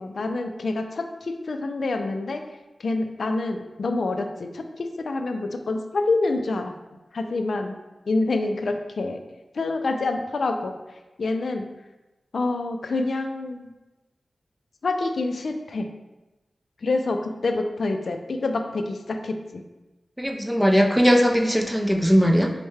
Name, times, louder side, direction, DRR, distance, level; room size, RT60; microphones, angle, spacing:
voice 1, 0.0-2.4 2.8-6.7 7.1-7.8 8.1-9.2 9.5-10.7 11.2-11.6 12.3-13.7 14.8-15.9 16.8-19.6, left 3 dB, 70° left, 6 dB, 0.3 m, -27 dB
voice 2, 20.2-22.5, equal, ahead, 2 dB, 0.4 m, -19 dB
4.4 x 2.1 x 3.2 m, 1.1 s
wide cardioid pair, 95°, 0 cm